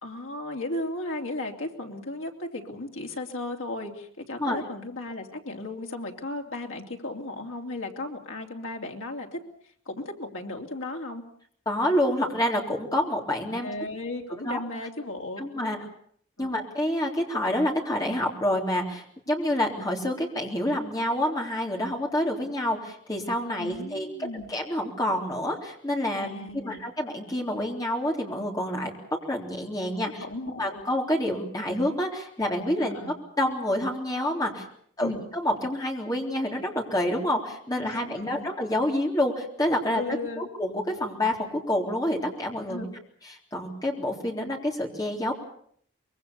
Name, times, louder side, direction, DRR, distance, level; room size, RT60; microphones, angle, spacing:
voice 1, 0.0-9.4 9.8-11.2 13.6-15.8 16.4-16.5 23.6-24.5 26.2-26.8 30.2-30.9 32.8-33.2 35.0-35.2 37.8-38.5 39.9-40.5 42.7-42.9, left 2 dB, 80° left, 2 dB, 3.2 m, -35 dB
voice 2, 11.7-13.7 14.3-14.6 15.4-15.8 16.4-24.1 24.3-28.9 29.3-30.2 30.6-34.7 35.0-40.0 40.4-42.9 43.3-45.3, left 1 dB, 20° left, 0 dB, 3.6 m, -28 dB
24.5 x 22.5 x 7.0 m, 0.63 s
head